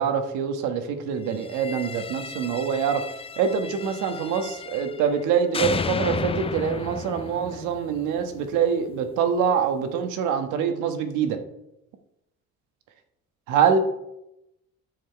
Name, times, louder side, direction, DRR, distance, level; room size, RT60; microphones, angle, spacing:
voice 1, 0.0-3.0 3.4-11.4 13.5-13.8, right 7 dB, 90° right, 6 dB, 1.3 m, -25 dB
sound 1, 1.4-5.2 5.5-8.6, left 5 dB, 20° left, 0.4 m, -33 dB
10.0 x 6.9 x 4.6 m, 0.86 s
cardioid pair, 90°, 29 cm